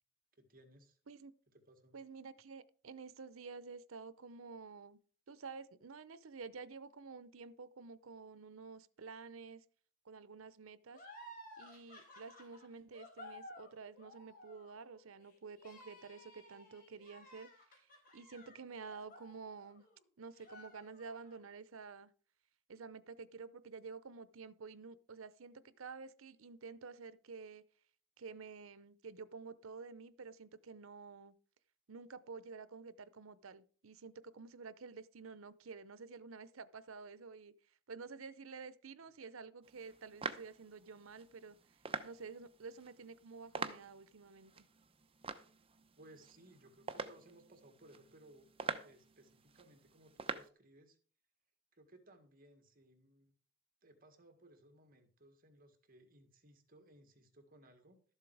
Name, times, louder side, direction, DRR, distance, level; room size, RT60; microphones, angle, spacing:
voice 1, 0.4-1.0 1.5-2.0 39.0-39.1 46.0-51.0 51.7-53.3 53.8-58.0, right 1 dB, 45° right, 1.9 m, -62 dB
voice 2, 1.9-5.0 5.3-9.6 10.0-11.0 11.6-17.9 18.1-19.8 20.2-22.1 22.7-27.6 28.2-31.3 31.9-37.5 37.9-41.6 42.0-44.7, right 4 dB, 85° right, 0.7 m, -50 dB
sound 1, 10.9-20.0 20.3-21.4, left 1 dB, 45° left, 3.8 m, -56 dB
sound 2, 39.6-50.5, right 4 dB, 25° right, 0.8 m, -47 dB
13.0 x 7.4 x 4.8 m
head